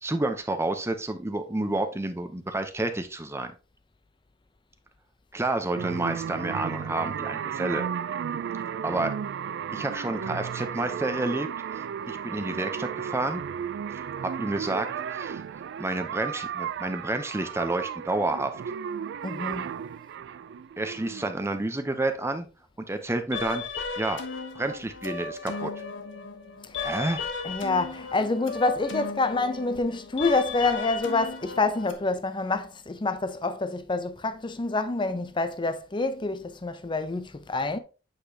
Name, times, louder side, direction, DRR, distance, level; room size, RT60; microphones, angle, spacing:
voice 1, 0.0-3.5 5.3-7.9 8.8-9.1 9.7-11.5 11.7-13.4 13.9-15.4 15.8-18.5 20.8-22.5 22.9-23.6 24.0-24.2 24.6-25.7 26.8-27.2, right 2 dB, 15° right, 0.7 m, -30 dB
sound 1, 5.7-21.3, right 8 dB, 65° right, 0.3 m, -34 dB
voice 2, 19.2-19.8 26.6-26.8 27.4-37.8, left 3 dB, 25° left, 0.6 m, -27 dB
sound 2, 23.3-31.9, left 4 dB, 80° left, 1.1 m, -35 dB
8.2 x 5.0 x 2.8 m
head